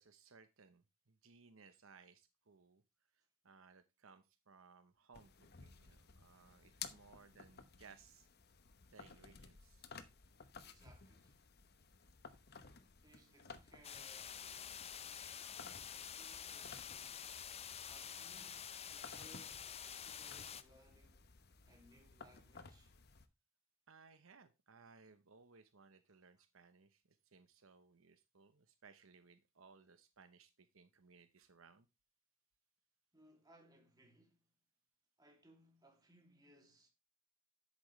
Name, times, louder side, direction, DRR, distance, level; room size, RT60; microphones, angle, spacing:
voice 1, 0.0-2.8 3.4-8.3 8.9-9.9 23.9-31.9, right 5 dB, 70° right, 0.9 m, -63 dB
sound 1, 5.1-23.3, left 6 dB, 50° left, 1.0 m, -57 dB
voice 2, 10.6-11.4 13.0-17.3 17.9-21.3 21.7-23.0 33.1-34.5 35.2-36.9, right 1 dB, 20° right, 2.6 m, -67 dB
sound 2, 13.8-20.6, left 8 dB, 30° left, 0.6 m, -48 dB
10.5 x 8.3 x 3.2 m
head